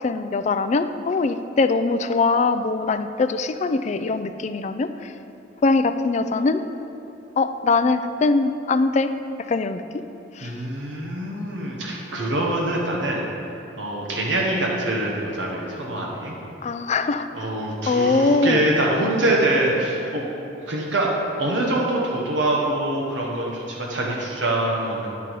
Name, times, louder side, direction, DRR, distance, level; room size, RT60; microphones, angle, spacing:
voice 1, 0.0-5.1 5.6-6.6 7.4-9.1 9.5-9.8 10.4-10.5 16.6-17.5 17.9-18.7, left 3 dB, 40° left, 10 dB, 0.3 m, -22 dB
voice 2, 10.4-13.2 13.8-16.3 17.3-20.2 20.7-21.1 21.4-23.5 23.8-25.1, right 1 dB, 80° right, -3 dB, 1.1 m, -24 dB
10.5 x 6.0 x 4.6 m, 3.0 s
head